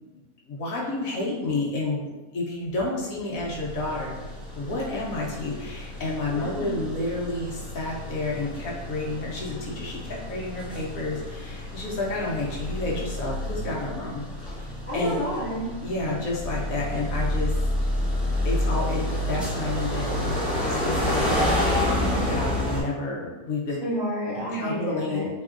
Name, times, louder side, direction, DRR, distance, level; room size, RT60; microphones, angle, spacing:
voice 1, 0.5-4.2 4.5-15.2 15.8-17.5 18.4-23.8 24.5-25.3, left 2 dB, 70° left, -4 dB, 1.0 m, -30 dB
sound 1, 3.4-22.8, left 1 dB, ahead, 0.8 m, -29 dB
voice 2, 6.3-6.7 14.9-15.7 23.8-25.3, equal, 20° left, -11 dB, 1.5 m, -30 dB
3.5 x 3.0 x 2.4 m, 1.2 s
omnidirectional pair, 1.6 m